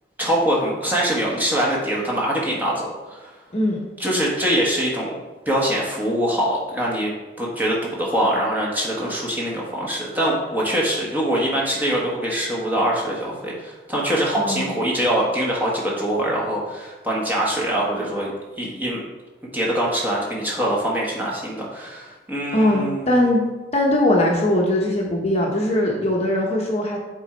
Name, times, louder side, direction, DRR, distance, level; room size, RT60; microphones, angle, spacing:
voice 1, 0.2-3.3 4.0-5.1 5.4-7.1 7.4-19.0 19.5-23.2, right 1 dB, 10° right, -4 dB, 1.3 m, -23 dB
voice 2, 14.4-14.7 22.5-23.4 23.7-27.0, left 1 dB, 35° left, -1 dB, 0.9 m, -20 dB
7.9 x 3.8 x 4.4 m, 1.2 s
head